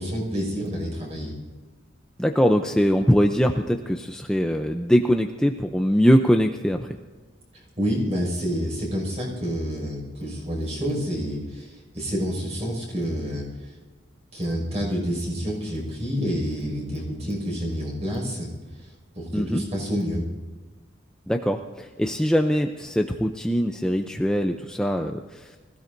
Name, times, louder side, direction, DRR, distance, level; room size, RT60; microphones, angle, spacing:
voice 1, 0.0-1.3 7.5-13.8 14.3-18.5 18.8-20.3, equal, 35° right, -1 dB, 5.8 m, -28 dB
voice 2, 2.2-7.0 19.3-19.6 21.3-25.5, equal, 5° left, 3 dB, 0.5 m, -22 dB
25.0 x 16.0 x 2.7 m, 1.3 s
head